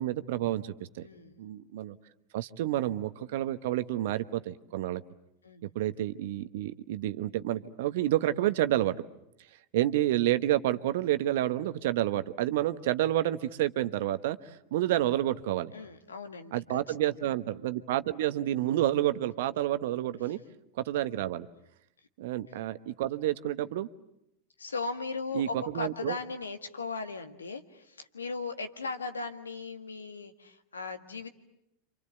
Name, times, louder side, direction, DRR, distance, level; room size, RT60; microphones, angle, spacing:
voice 1, 0.0-1.1 1.4-2.0 2.3-5.0 5.6-9.0 9.7-15.7 16.5-20.4 20.8-21.5 22.2-23.9 25.3-26.2, right 13 dB, 65° right, 12 dB, 1.1 m, -29 dB
voice 2, 1.0-1.4 5.4-5.7 15.7-17.1 24.6-31.3, left 4 dB, 85° left, 8 dB, 1.7 m, -38 dB
28.0 x 26.5 x 8.1 m, 0.80 s
hypercardioid pair, 90°, 0 cm